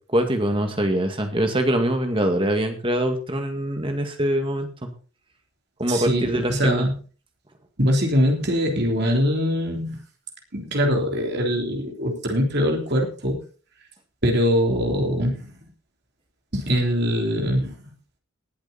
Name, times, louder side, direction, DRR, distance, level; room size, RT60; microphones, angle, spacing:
voice 1, 0.1-4.9 5.8-6.9, right 1 dB, 25° right, 5 dB, 2.0 m, -23 dB
voice 2, 5.9-6.9 7.8-10.0 10.5-13.4 14.2-15.4 16.5-17.9, equal, 50° right, 2 dB, 3.5 m, -22 dB
19.5 x 8.1 x 4.2 m, 0.38 s
head